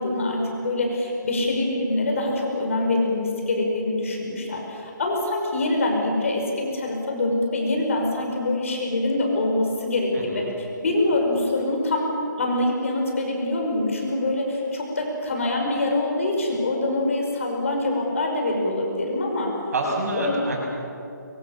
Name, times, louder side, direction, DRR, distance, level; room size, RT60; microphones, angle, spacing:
voice 1, 0.0-10.5 10.8-19.6 20.1-20.4, left 2 dB, 40° left, 1 dB, 5.6 m, -24 dB
voice 2, 10.1-10.5 19.7-20.6, right 2 dB, 50° right, -1 dB, 7.2 m, -27 dB
25.0 x 24.5 x 7.3 m, 2.8 s
hypercardioid pair, 180°, 11 cm